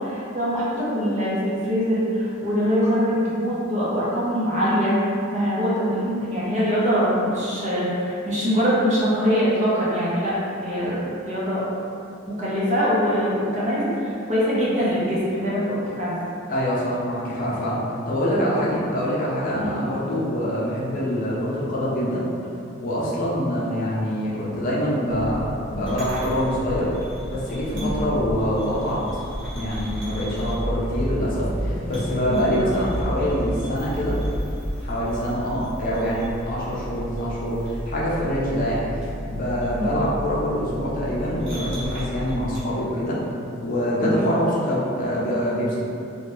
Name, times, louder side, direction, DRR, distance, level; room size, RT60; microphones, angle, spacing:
voice 1, 0.0-11.6 12.3-16.2 19.5-19.8 27.7-27.9 32.3-32.4 39.7-39.9 44.0-44.2, equal, 40° right, -8 dB, 0.7 m, -23 dB
voice 2, 16.5-22.2 22.8-26.9 27.3-29.0 29.5-34.2 34.8-38.8 39.2-43.2 43.6-45.8, equal, 45° left, -7 dB, 0.6 m, -25 dB
sound 1, 25.1-42.6, equal, 90° right, 1.0 m, -32 dB
2.8 x 2.2 x 3.0 m, 2.5 s
head